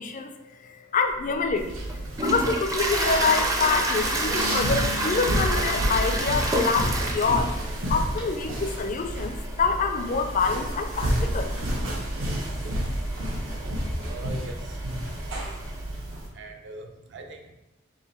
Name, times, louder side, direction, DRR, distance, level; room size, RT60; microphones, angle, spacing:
voice 1, 0.0-1.8 2.2-7.5 7.9-11.5, left 4 dB, 40° left, 6 dB, 0.4 m, -26 dB
Toilet flush, 1.2-15.9, right 1 dB, 15° right, 0.5 m, -31 dB
sound 1, 1.6-16.3, right 1 dB, 80° right, 1.1 m, -30 dB
sound 2, 4.3-8.6, left 2 dB, 85° left, 1.3 m, -41 dB
voice 2, 14.0-14.8 15.4-15.5 16.3-17.5, right 3 dB, 60° right, 3 dB, 0.6 m, -41 dB
3.9 x 3.0 x 4.2 m, 0.99 s
head